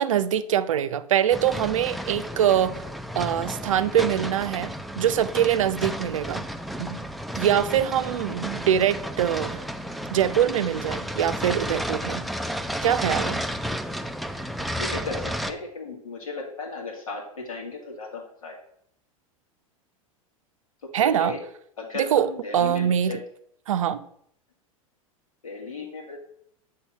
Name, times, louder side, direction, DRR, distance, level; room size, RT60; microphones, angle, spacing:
voice 1, 0.0-2.8 3.1-6.5 6.8-7.0 7.3-9.6 10.1-12.3 12.8-13.4 20.9-21.4 21.9-22.3 22.5-23.2 23.7-24.0, right 10 dB, 65° right, 0.5 m, -23 dB
sound 1, 1.3-15.5, equal, ahead, 0.4 m, -32 dB
voice 2, 14.8-18.6 21.0-21.4 21.8-23.2 25.4-26.2, left 4 dB, 75° left, 2.2 m, -35 dB
8.2 x 3.7 x 5.5 m
figure-of-eight pair, 85°, 18 cm